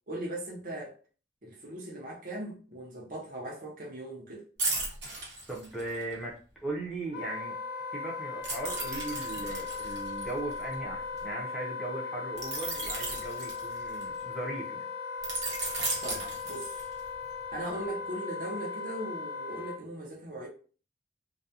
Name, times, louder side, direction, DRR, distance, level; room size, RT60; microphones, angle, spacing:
voice 1, 0.1-1.0 1.4-4.5 16.0-16.8 17.5-20.5, right 1 dB, 50° right, 0.6 m, -39 dB
sound 1, 4.6-6.1 8.4-11.2 12.4-14.2 15.2-17.1 17.5-17.7, right 2 dB, 80° right, 1.0 m, -35 dB
voice 2, 5.5-7.6 7.9-14.8, right 2 dB, ahead, 0.5 m, -38 dB
Wind instrument woodwind instrument, 7.1-19.8, left 4 dB, 55° left, 0.5 m, -38 dB
2.3 x 2.1 x 2.7 m
head